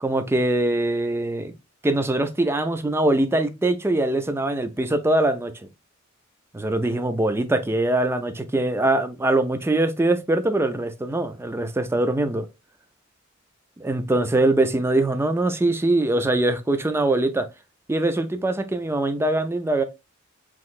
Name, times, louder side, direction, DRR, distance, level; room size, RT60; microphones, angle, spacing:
voice 1, 0.0-1.5 1.8-5.7 6.5-12.5 13.8-17.5 17.9-19.8, right 2 dB, 10° right, 0.4 m, -22 dB
3.8 x 3.1 x 2.4 m
head